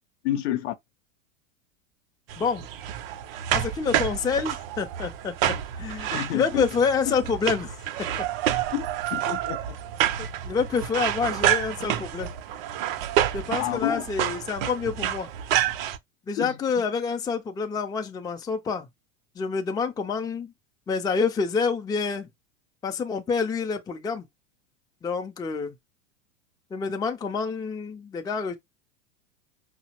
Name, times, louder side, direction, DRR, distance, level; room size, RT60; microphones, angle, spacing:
voice 1, 0.2-0.7 6.1-6.6 7.1-7.2 8.7-9.8 13.6-14.0 16.4-16.5, left 12 dB, 55° left, 0.7 m, -29 dB
sound 1, 2.3-16.0, right 11 dB, 50° right, 0.6 m, -28 dB
voice 2, 3.5-7.7 10.2-12.3 13.3-15.3 16.3-18.9 19.4-20.5 20.9-22.3 22.8-24.3 25.0-25.7 26.7-28.6, left 5 dB, 10° left, 0.5 m, -27 dB
5.4 x 2.1 x 2.9 m
hypercardioid pair, 90°, 39 cm